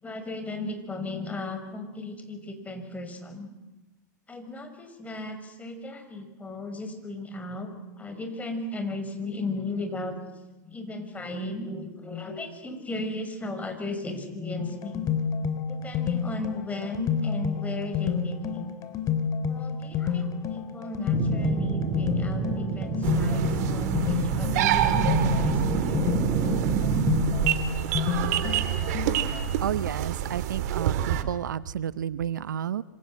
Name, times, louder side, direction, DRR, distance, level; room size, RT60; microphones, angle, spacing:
voice 1, 0.0-3.5 4.3-7.7 8.0-10.2 10.6-15.1 15.7-18.7 19.5-26.0, left 2 dB, 15° left, 7 dB, 5.4 m, -36 dB
sound 1, 14.6-29.5, left 7 dB, 35° left, 2.9 m, -29 dB
sound 2, 21.1-27.3, right 5 dB, 25° right, 5.9 m, -28 dB
sound 3, 23.0-31.2, right 11 dB, 60° right, 2.4 m, -28 dB
voice 2, 29.6-32.8, right 9 dB, 80° right, 18 dB, 0.8 m, -31 dB
26.5 x 26.0 x 7.6 m, 1.1 s
hypercardioid pair, 105°, 10 cm